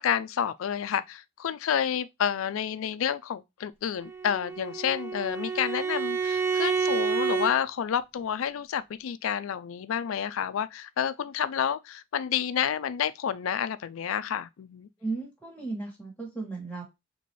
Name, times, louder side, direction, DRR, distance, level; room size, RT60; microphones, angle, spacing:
voice 1, 0.0-14.9, left 8 dB, 70° left, 0.4 m, -29 dB
Bowed string instrument, 4.0-7.6, right 5 dB, 10° right, 0.4 m, -29 dB
voice 2, 15.0-16.8, right 3 dB, 5° left, 1.8 m, -35 dB
4.2 x 3.0 x 3.0 m
head